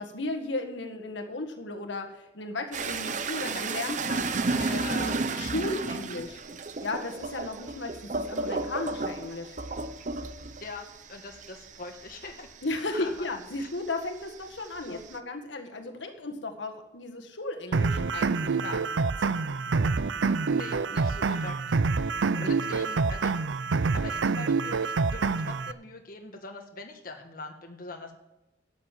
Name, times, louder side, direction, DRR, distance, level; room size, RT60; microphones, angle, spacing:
voice 1, 0.0-6.4 6.8-9.5 12.6-18.9 20.9-21.0 21.3-21.4 22.3-22.5, left 2 dB, 75° left, 4 dB, 1.6 m, -35 dB
sound 1, 2.7-13.7 14.0-15.2, right 3 dB, 40° right, 0.7 m, -33 dB
voice 2, 3.4-3.7 4.6-5.2 10.6-12.5 12.9-13.1 13.6-13.7 14.8-15.0 20.5-21.5 21.9-28.1, left 3 dB, 50° left, 3 dB, 1.5 m, -42 dB
sound 2, 17.7-25.7, right 4 dB, 80° right, 0.5 m, -27 dB
12.0 x 7.3 x 7.5 m, 0.98 s
head